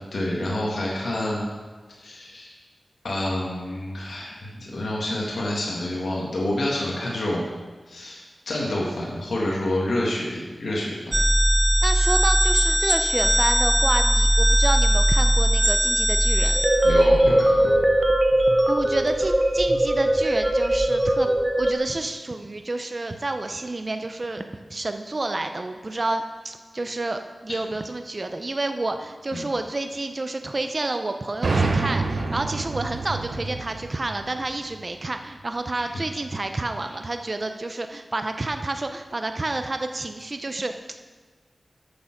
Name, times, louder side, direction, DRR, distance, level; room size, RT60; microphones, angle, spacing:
voice 1, 0.1-1.5 2.0-2.5 3.0-7.5 7.9-11.2 16.8-17.7 29.3-29.4 35.8-35.9, left 1 dB, 85° left, -4 dB, 1.8 m, -28 dB
sound 1, 11.1-21.7, right 1 dB, 15° right, 1.0 m, -20 dB
voice 2, 11.8-16.6 18.7-21.3 21.6-41.0, right 2 dB, 40° right, 7 dB, 0.6 m, -29 dB
sound 2, 31.4-35.1, right 3 dB, 80° right, 0.9 m, -27 dB
8.5 x 6.6 x 6.0 m, 1.3 s
wide cardioid pair, 75°, 0 cm